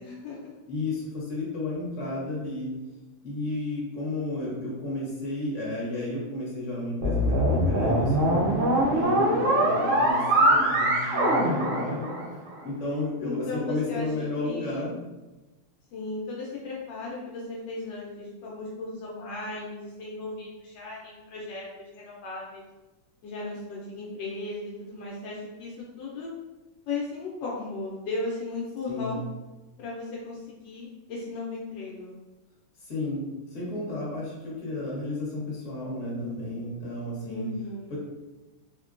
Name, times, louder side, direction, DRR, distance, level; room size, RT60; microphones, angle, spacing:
voice 1, 0.0-0.5 9.3-10.2 13.2-14.9 15.9-22.6 23.2-26.3 26.9-29.2 29.8-32.2 37.3-38.0, left 3 dB, 75° left, -4 dB, 1.3 m, -36 dB
voice 2, 0.7-2.7 3.2-12.1 12.6-14.9 28.9-29.2 32.8-33.2 33.5-37.5 37.9-38.0, left 2 dB, 45° left, -6 dB, 1.2 m, -32 dB
sound 1, 7.0-12.5, right 1 dB, 85° right, 0.6 m, -23 dB
3.5 x 2.1 x 2.4 m, 1.1 s
omnidirectional pair, 2.1 m